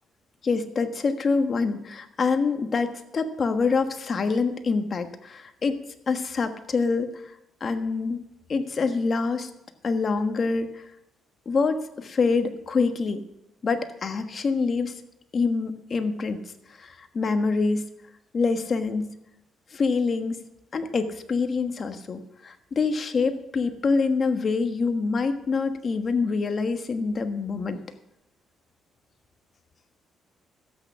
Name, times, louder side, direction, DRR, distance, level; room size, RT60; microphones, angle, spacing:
voice 1, 0.4-5.8 6.1-7.1 7.6-8.2 8.5-9.5 9.8-10.8 11.4-13.2 13.6-14.9 15.3-16.4 16.8-17.8 18.3-19.1 19.7-20.4 20.7-27.8, left 4 dB, 45° left, 8 dB, 1.3 m, -25 dB
13.0 x 8.6 x 6.1 m, 0.87 s
cardioid pair, 90°, 0 cm